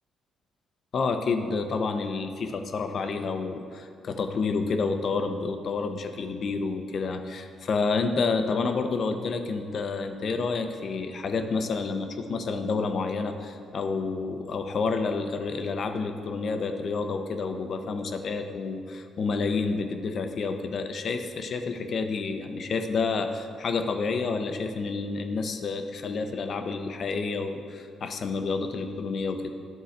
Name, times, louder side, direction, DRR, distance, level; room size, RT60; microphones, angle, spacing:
voice 1, 0.9-29.5, left 4 dB, 55° left, 7 dB, 0.7 m, -29 dB
10.5 x 3.8 x 6.5 m, 2.3 s
cardioid pair, 90°, 0 cm